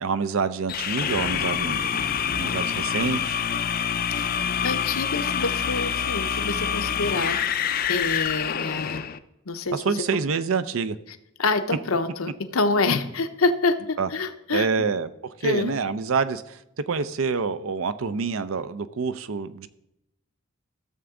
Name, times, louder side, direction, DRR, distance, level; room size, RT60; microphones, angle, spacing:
voice 1, 0.0-1.8 2.3-3.4 9.7-11.0 14.0-14.1 14.5-19.7, right 5 dB, 75° right, 0.6 m, -27 dB
sound 1, 0.7-9.2, left 8 dB, 45° left, 0.4 m, -26 dB
voice 2, 4.2-7.4 7.9-9.1 9.5-9.8 10.1-10.2 11.4-14.7 15.4-15.7, left 3 dB, 85° left, 0.8 m, -26 dB
14.5 x 7.0 x 3.8 m
head